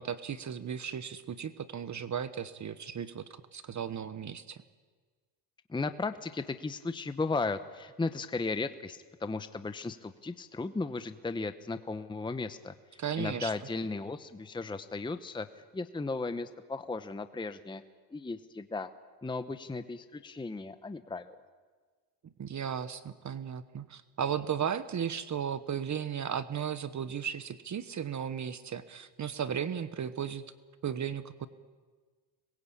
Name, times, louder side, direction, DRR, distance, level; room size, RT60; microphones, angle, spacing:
voice 1, 0.0-4.6 13.0-13.5 22.2-30.4 30.8-31.5, right 8 dB, 35° right, 13 dB, 1.2 m, -35 dB
voice 2, 5.7-17.8 18.1-18.9 19.2-21.4, left 3 dB, 10° left, 10 dB, 0.9 m, -36 dB
26.0 x 21.5 x 8.7 m, 1.5 s
supercardioid pair, 100°, 49 cm